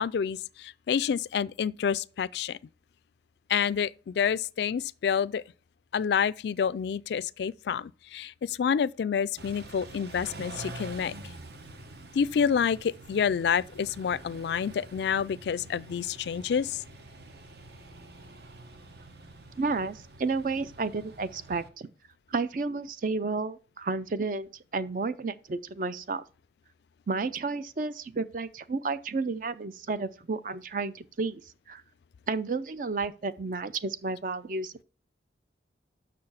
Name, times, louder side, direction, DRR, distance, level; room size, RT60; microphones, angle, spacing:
voice 1, 0.0-2.6 3.5-5.4 5.9-11.1 12.1-16.8, left 7 dB, 65° left, 0.3 m, -28 dB
Car / Idling / Accelerating revving vroom, 9.4-21.7, right 2 dB, 60° right, 0.9 m, -46 dB
voice 2, 19.6-21.9 22.3-26.2 27.1-31.4 31.7-31.8 32.3-34.8, right 4 dB, 45° right, 0.5 m, -31 dB
6.7 x 6.2 x 5.6 m
head